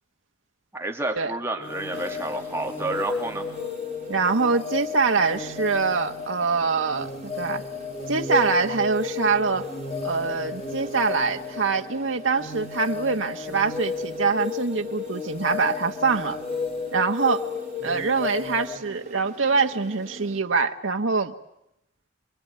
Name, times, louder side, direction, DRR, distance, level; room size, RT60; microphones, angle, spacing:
voice 1, 0.7-3.5, right 2 dB, 15° right, 2 dB, 2.8 m, -30 dB
sound 1, 1.6-18.8, left 5 dB, 30° left, 2.5 m, -33 dB
sound 2, 1.9-20.4, right 1 dB, 35° right, 4.3 m, -45 dB
voice 2, 4.1-7.1 7.4-7.6 8.1-9.6 10.0-16.4 16.9-17.4 17.8-21.3, right 4 dB, 85° right, 4 dB, 1.3 m, -24 dB
28.0 x 22.5 x 9.5 m, 0.81 s
head